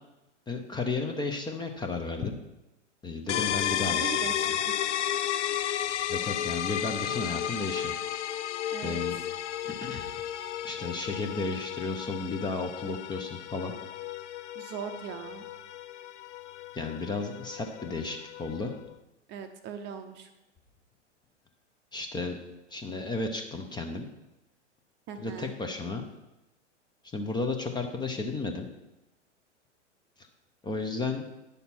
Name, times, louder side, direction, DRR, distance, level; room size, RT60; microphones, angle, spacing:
voice 1, 0.5-2.4 3.0-4.1 6.1-7.9 8.8-9.2 9.6-10.2 10.6-13.7 16.7-18.7 21.9-22.4 22.7-24.1 25.2-26.1 27.1-28.7 30.2-30.3 30.6-31.2, left 3 dB, 10° left, 5 dB, 0.8 m, -33 dB
sound 1, 3.3-18.9, left 10 dB, 70° left, 0.5 m, -33 dB
voice 2, 3.7-4.8 8.7-9.0 14.5-15.5 19.3-20.3 25.1-25.6, right 7 dB, 30° right, 7 dB, 0.8 m, -40 dB
9.8 x 6.8 x 4.4 m, 0.97 s
figure-of-eight pair, 100°, 36 cm